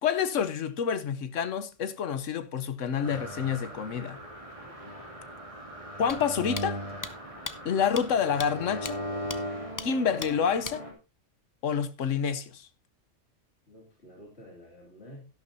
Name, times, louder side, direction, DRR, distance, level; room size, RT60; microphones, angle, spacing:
voice 1, 0.0-4.2 6.0-6.8 7.6-9.0 9.8-10.8 11.6-12.7, left 7 dB, 80° left, 1.3 m, -28 dB
sound 1, 3.0-10.9, equal, 25° right, 2.9 m, -38 dB
voice 2, 4.6-5.0 13.7-15.2, equal, 55° left, 3.2 m, -50 dB
sound 2, 6.1-6.2 6.6-6.7 7.0-7.1 7.5-7.6 8.0-8.1 8.4-8.5 8.9-9.0 9.3-9.4 9.8-9.9 10.2-10.3 10.6-10.8, left 3 dB, 25° left, 0.5 m, -36 dB
12.0 x 11.5 x 2.7 m
omnidirectional pair, 1.3 m